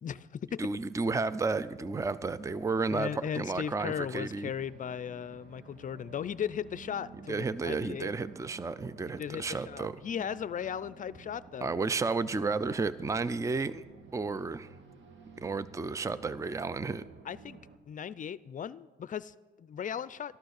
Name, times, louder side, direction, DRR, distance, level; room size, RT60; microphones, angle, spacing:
voice 1, 0.0-0.6 2.9-8.1 9.2-11.7 17.2-17.6 17.9-20.4, left 8 dB, 40° left, 0.5 m, -37 dB
voice 2, 0.6-4.5 7.3-9.9 11.6-13.8 14.1-14.7 15.4-17.0, right 4 dB, 15° right, 0.5 m, -32 dB
sound 1, 1.6-17.8, right 5 dB, 70° right, 1.8 m, -53 dB
13.0 x 12.0 x 6.6 m
cardioid pair, 90°, 20 cm